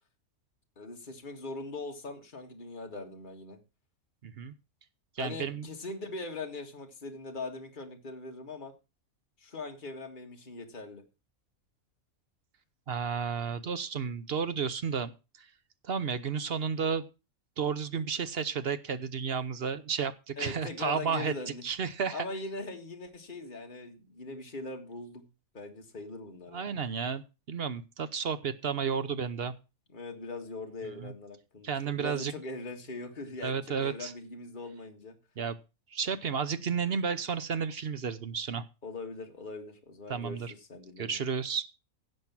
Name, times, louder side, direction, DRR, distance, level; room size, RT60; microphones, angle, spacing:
voice 1, 0.8-3.6 5.2-8.7 9.4-11.0 20.4-21.6 22.1-25.2 25.5-26.7 28.8-29.1 29.9-35.1 38.8-40.4 40.7-41.2, left 3 dB, 35° left, 3 dB, 2.0 m, -41 dB
voice 2, 4.2-4.5 5.2-5.7 12.9-15.1 15.8-17.1 17.6-21.3 21.6-22.3 26.5-29.5 31.0-31.1 31.6-32.3 33.4-34.1 35.4-35.6 35.9-38.6 40.1-40.5 41.0-41.7, right 6 dB, 50° right, 12 dB, 0.9 m, -32 dB
16.0 x 5.4 x 5.9 m, 0.30 s
omnidirectional pair, 1.5 m